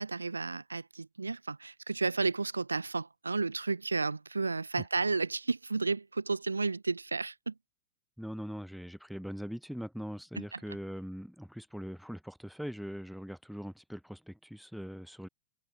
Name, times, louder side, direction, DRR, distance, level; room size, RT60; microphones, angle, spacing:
voice 1, 0.0-7.5 10.4-10.6, right 3 dB, 80° right, 0.3 m, -32 dB
voice 2, 8.2-15.3, equal, ahead, 0.3 m, -41 dB
figure-of-eight pair, 95°, 0 cm